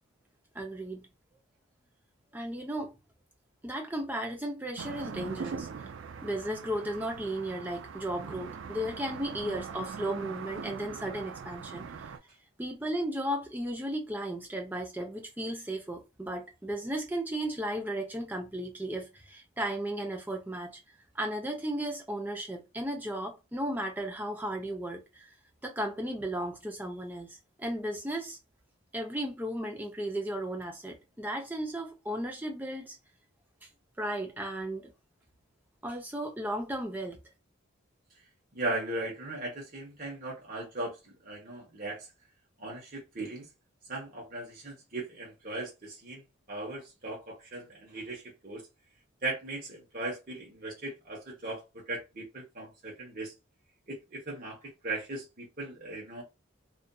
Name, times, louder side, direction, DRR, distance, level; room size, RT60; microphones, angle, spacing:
voice 1, 0.5-1.1 2.3-2.9 3.6-5.9 6.2-11.9 12.6-20.7 21.1-25.3 25.6-28.4 28.9-33.0 34.0-34.9 35.8-37.2, right 1 dB, 10° right, 0.5 m, -35 dB
sound 1, 4.8-12.2, right 6 dB, 65° right, 0.3 m, -41 dB
voice 2, 38.5-42.1 42.6-43.5 43.9-46.2 46.5-48.6 49.2-53.3 53.9-56.2, right 2 dB, 40° right, 0.9 m, -38 dB
2.5 x 2.4 x 2.2 m
head